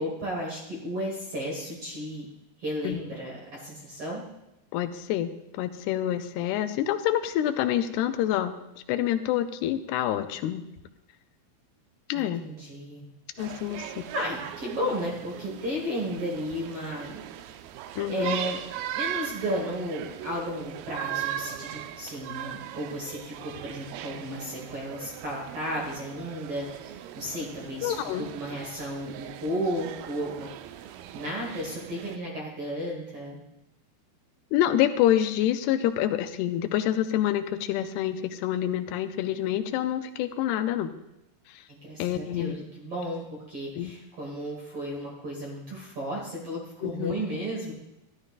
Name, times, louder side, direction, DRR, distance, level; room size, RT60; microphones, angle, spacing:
voice 1, 0.0-2.2 2.6-4.2 12.1-13.1 14.1-17.2 18.1-18.6 18.9-30.5 30.8-33.4 41.7-47.7, equal, 50° right, -2 dB, 1.8 m, -34 dB
voice 2, 4.7-8.5 8.9-10.6 12.1-12.4 13.4-14.0 18.0-18.4 27.8-28.3 34.5-40.9 41.5-41.6 42.0-42.6 43.8-43.9 46.8-47.2, left 11 dB, 85° left, 9 dB, 2.6 m, -27 dB
sound 1, 13.4-32.2, right 11 dB, 85° right, 2.1 m, -39 dB
14.0 x 11.0 x 2.4 m, 0.91 s
omnidirectional pair, 4.7 m